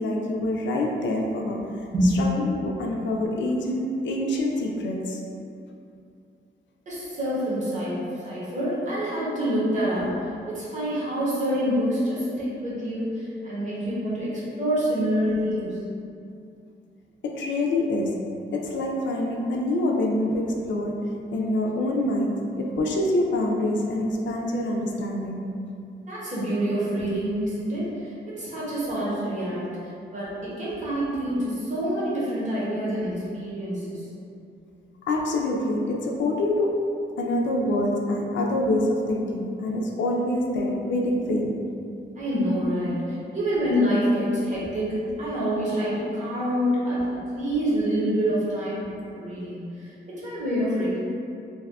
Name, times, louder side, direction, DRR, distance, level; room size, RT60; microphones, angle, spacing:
voice 1, 0.0-1.8 2.2-5.2 17.2-18.2 18.5-25.4 35.1-36.7 37.2-41.6, left 1 dB, 75° left, 0 dB, 0.4 m, -26 dB
voice 2, 6.9-15.8 26.1-29.8 30.1-34.1 42.2-51.0, equal, 40° right, -8 dB, 0.8 m, -27 dB
2.6 x 2.3 x 3.4 m, 2.5 s
wide cardioid pair, 180°, 19 cm